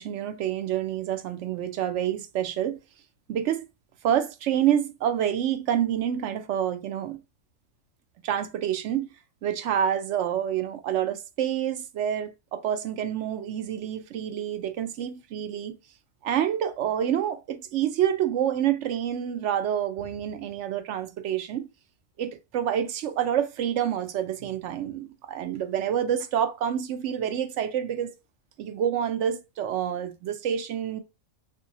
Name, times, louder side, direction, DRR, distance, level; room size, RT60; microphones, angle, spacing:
voice 1, 0.0-2.8 3.3-3.6 4.0-7.2 8.2-9.1 9.4-15.7 16.2-21.7 22.2-28.1 28.6-31.0, right 10 dB, 70° right, 0.9 m, -27 dB
3.6 x 2.6 x 2.8 m
omnidirectional pair, 1.3 m